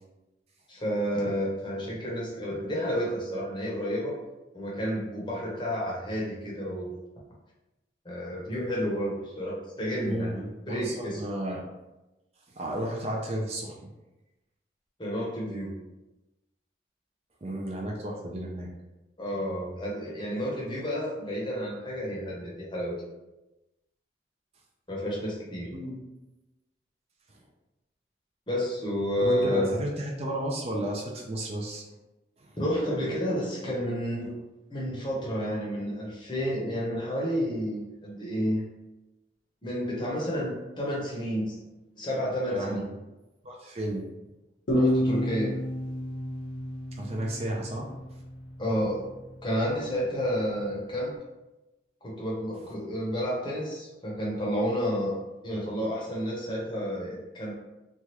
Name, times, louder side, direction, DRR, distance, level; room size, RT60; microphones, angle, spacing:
voice 1, 0.7-4.1 4.5-7.0 8.0-11.2 15.0-15.8 19.2-23.0 24.9-25.7 28.5-29.8 32.6-34.3 34.7-38.6 39.6-41.5 42.0-42.8 44.7-45.6 48.6-49.1 49.4-51.1 52.0-55.2 55.4-57.5, equal, 25° left, -4 dB, 0.7 m, -30 dB
voice 2, 10.0-11.7 12.5-13.9 17.4-18.7 25.7-26.0 27.3-27.4 29.2-31.8 42.5-42.9 43.4-44.0 47.0-47.9, right 1 dB, 35° right, -1 dB, 0.4 m, -33 dB
sound 1, 44.7-48.1, equal, 85° left, 0.9 m, -29 dB
3.2 x 2.3 x 2.9 m, 1.0 s
head